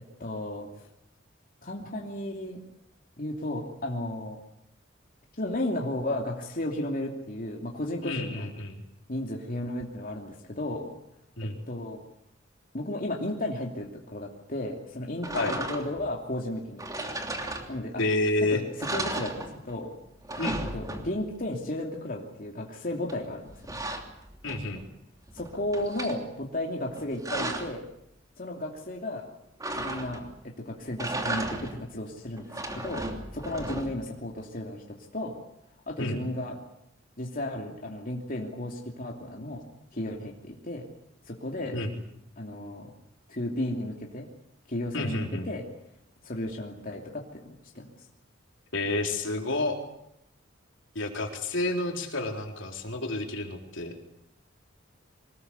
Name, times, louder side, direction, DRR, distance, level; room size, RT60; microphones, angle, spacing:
voice 1, 0.2-0.7 1.6-2.6 3.2-4.4 5.4-8.5 9.1-10.9 11.4-12.0 12.7-16.8 17.7-18.0 18.5-18.6 18.9-19.9 20.7-23.8 25.3-27.9 28.4-29.3 29.8-33.0 33.3-35.3 35.9-36.6 37.2-39.6 39.9-40.8 41.3-41.8 42.4-42.9 43.3-44.3 44.7-45.6 46.2-47.4 47.7-47.8, left 1 dB, 45° left, 0 dB, 2.9 m, -34 dB
voice 2, 8.0-8.8 11.4-11.6 15.3-15.5 18.0-18.6 20.4-20.6 24.4-24.8 36.0-36.2 41.7-41.9 44.9-45.5 48.7-49.8 50.9-54.0, left 2 dB, 70° left, 3 dB, 4.1 m, -30 dB
sound 1, 15.2-16.1 16.8-18.1 18.4-18.5 18.8-19.9 20.1-21.4 23.1-24.9 25.3-26.2 26.9-27.8 29.6-30.4 30.9-31.9 32.4-34.2, right 2 dB, 20° right, 3.1 m, -35 dB
24.5 x 20.5 x 8.3 m, 0.79 s
head